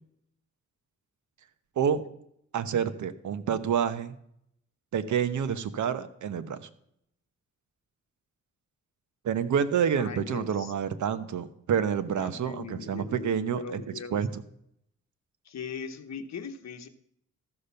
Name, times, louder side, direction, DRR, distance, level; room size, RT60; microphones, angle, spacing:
voice 1, 2.5-4.1 4.9-6.7 9.2-13.8 14.1-14.3, right 8 dB, 80° right, 11 dB, 1.0 m, -28 dB
voice 2, 9.9-10.7 12.2-14.2 15.4-16.9, left 6 dB, 65° left, 7 dB, 1.2 m, -40 dB
14.0 x 6.8 x 5.6 m, 0.74 s
wide cardioid pair, 135°, 29 cm